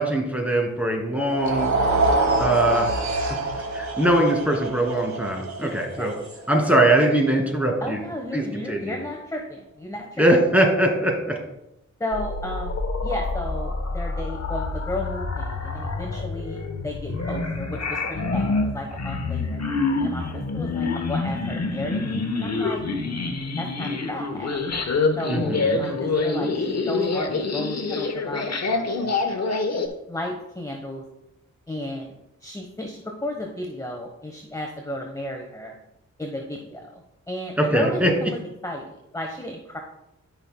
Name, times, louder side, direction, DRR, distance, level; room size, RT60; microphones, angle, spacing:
voice 1, 0.0-1.7 2.4-2.9 3.7-6.1 6.5-8.0 8.3-9.0 10.2-11.1 25.3-25.8 37.6-38.1, right 1 dB, 5° right, 0 dB, 2.2 m, -21 dB
sound 1, 1.3-7.5, right 2 dB, 70° right, 1.8 m, -26 dB
voice 2, 5.6-6.4 7.8-10.2 12.0-19.6 20.0-22.8 23.6-24.6 25.2-29.2 30.1-31.0 31.7-32.1 32.4-35.7 36.2-39.8, left 1 dB, 10° left, 2 dB, 1.0 m, -34 dB
sound 2, 12.1-29.9, left 3 dB, 60° left, 1.0 m, -26 dB
12.5 x 5.8 x 2.2 m, 0.88 s
cardioid pair, 65°, 29 cm